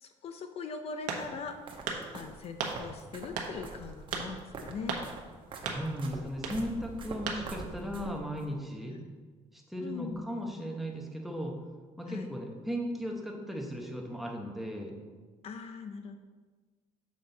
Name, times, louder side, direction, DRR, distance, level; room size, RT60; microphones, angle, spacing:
voice 1, 0.0-1.6 2.1-5.0 8.9-9.0 9.8-10.2 12.1-12.3 15.4-16.2, left 5 dB, 50° left, 7 dB, 0.5 m, -41 dB
sound 1, 1.1-1.5 1.9-2.0 2.6-2.8 3.4-3.5 4.1-4.3 4.9-5.1 5.7-5.8 6.4-6.6 7.3-7.4, right 6 dB, 85° right, 1.1 m, -34 dB
sound 2, 1.2-8.5, right 3 dB, 40° right, 1.0 m, -46 dB
voice 2, 5.6-9.0 9.5-11.5 12.0-14.9, equal, ahead, 0 dB, 1.0 m, -36 dB
7.3 x 6.1 x 4.0 m, 1.4 s
cardioid pair, 140°, 13 cm